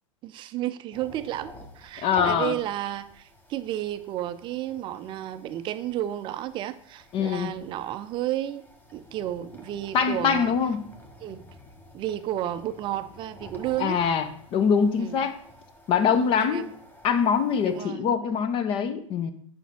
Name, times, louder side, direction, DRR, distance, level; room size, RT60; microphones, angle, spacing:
voice 1, 0.2-8.7 8.9-10.5 11.2-11.4 11.9-14.0 15.0-15.2 16.1-16.7 17.6-18.1, right 12 dB, 30° right, 13 dB, 0.5 m, -32 dB
sound 1, 0.9-17.8, left 1 dB, 10° left, 1.1 m, -47 dB
voice 2, 2.0-2.6 7.1-7.5 9.9-10.8 13.8-15.4 15.9-16.6 17.0-19.3, left 7 dB, 30° left, 11 dB, 0.7 m, -23 dB
9.2 x 5.4 x 3.5 m, 0.62 s
figure-of-eight pair, 90°, 17 cm